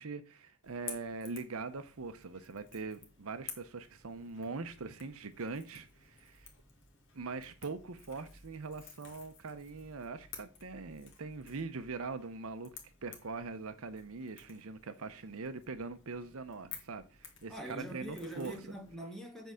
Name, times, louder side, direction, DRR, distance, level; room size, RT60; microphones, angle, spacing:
voice 1, 0.0-6.5 7.1-12.7 13.0-18.5, right 4 dB, 70° right, 0.7 m, -42 dB
Crackle / Crack, 0.6-18.9, left 6 dB, 55° left, 2.1 m, -53 dB
voice 2, 17.5-19.5, right 1 dB, ahead, 1.9 m, -43 dB
7.9 x 4.6 x 6.3 m
head